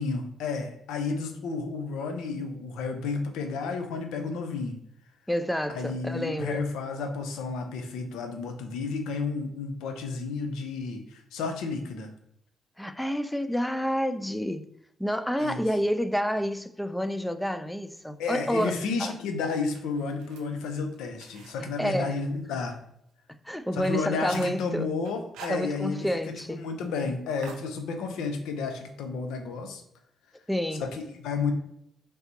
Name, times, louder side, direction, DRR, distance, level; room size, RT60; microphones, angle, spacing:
voice 1, 0.0-4.8 5.7-12.1 15.4-15.6 18.2-22.8 23.7-29.8 30.7-31.5, left 4 dB, 80° left, 0.4 m, -32 dB
voice 2, 5.3-6.7 12.8-14.7 15.0-19.1 21.6-22.2 23.5-24.9 25.5-26.7 30.5-30.9, equal, 5° left, 0.3 m, -29 dB
sound 1, 17.9-19.0 19.5-22.7 23.1-23.2 23.6-23.7 23.9-24.7 25.0-26.1 26.4-26.5 26.8-27.0 27.4-28.3, right 4 dB, 80° right, 0.4 m, -48 dB
3.3 x 2.7 x 2.9 m
hypercardioid pair, 50°, 0 cm